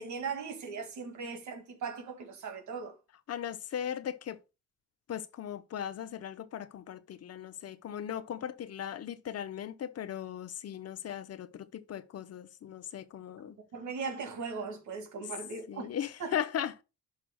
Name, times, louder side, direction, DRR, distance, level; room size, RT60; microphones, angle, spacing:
voice 1, 0.0-3.0 13.6-15.9 16.2-16.4, right 5 dB, 70° right, 2.2 m, -39 dB
voice 2, 3.3-4.4 5.1-13.6 15.2-15.3 15.7-16.7, left 9 dB, 55° left, 0.8 m, -38 dB
11.0 x 5.8 x 2.2 m
cardioid pair, 90°, 30 cm